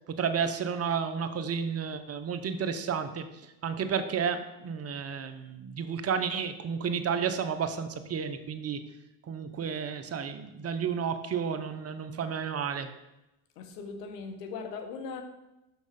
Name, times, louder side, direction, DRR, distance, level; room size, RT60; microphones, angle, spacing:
voice 1, 0.1-3.3 3.6-8.8 9.3-12.9, right 6 dB, 30° right, 9 dB, 0.8 m, -31 dB
voice 2, 13.6-15.2, left 5 dB, 85° left, 6 dB, 1.4 m, -39 dB
6.3 x 6.2 x 5.2 m, 0.95 s
supercardioid pair, 90°, 47 cm